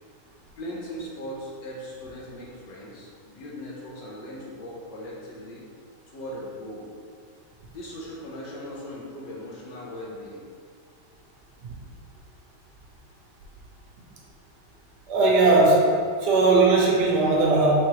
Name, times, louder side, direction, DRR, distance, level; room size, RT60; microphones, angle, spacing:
voice 1, 0.6-5.6 6.1-6.9 7.7-10.4, equal, 70° left, -4 dB, 1.5 m, -39 dB
voice 2, 15.1-15.9 16.2-17.7, right 3 dB, 65° right, -2 dB, 1.1 m, -18 dB
4.7 x 3.5 x 3.0 m, 2.1 s
omnidirectional pair, 2.2 m